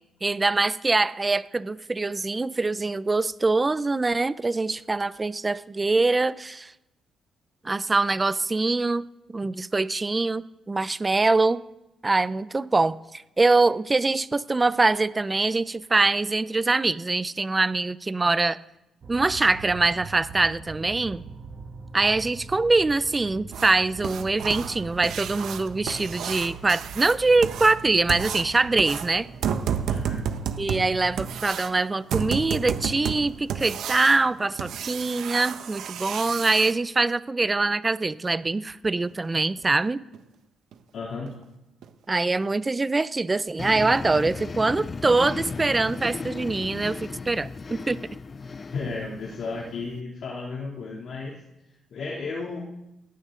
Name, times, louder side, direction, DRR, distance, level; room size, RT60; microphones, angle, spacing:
voice 1, 0.2-6.7 7.6-11.6 12.0-18.6 19.1-21.2 21.9-29.3 30.6-40.0 42.1-48.0, right 3 dB, 20° right, 15 dB, 0.6 m, -24 dB
sound 1, 19.0-31.4, right 4 dB, 50° right, 1.5 m, -42 dB
sound 2, 23.5-36.7 39.0-39.1 39.6-39.7 40.1-40.2 40.7-40.8 41.3-41.4 41.8-41.9 42.4-42.5, right 7 dB, 75° right, 1.2 m, -32 dB
voice 2, 29.9-30.2 40.9-41.3 48.4-51.3 51.9-52.6, left 4 dB, 60° left, -3 dB, 2.9 m, -34 dB
sound 3, 43.6-50.0, left 4 dB, 30° left, 0.5 m, -36 dB
18.0 x 16.0 x 3.9 m, 0.93 s
cardioid pair, 90°, 0 cm